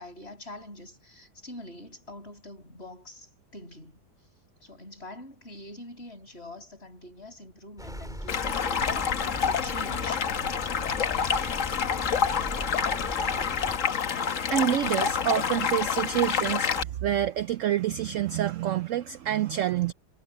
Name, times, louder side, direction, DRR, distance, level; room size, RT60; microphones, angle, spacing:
voice 1, 0.0-4.0 4.6-10.3, left 1 dB, 35° left, 7.3 m, -44 dB
sound 1, 7.8-13.8, equal, ahead, 4.1 m, -40 dB
Stream, 8.3-16.8, left 7 dB, 50° left, 1.4 m, -28 dB
voice 2, 14.2-19.9, right 11 dB, 75° right, 0.7 m, -27 dB
omnidirectional pair, 1.9 m